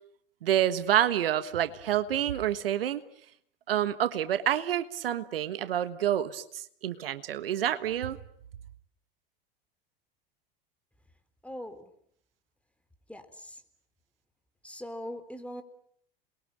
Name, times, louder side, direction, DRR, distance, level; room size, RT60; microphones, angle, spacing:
voice 1, 0.4-3.0 3.7-8.2, right 11 dB, 80° right, 1.5 m, -28 dB
voice 2, 11.4-11.9 13.1-13.6 14.6-15.6, equal, 5° left, 3.9 m, -41 dB
29.0 x 22.5 x 8.9 m
hypercardioid pair, 85°, 29 cm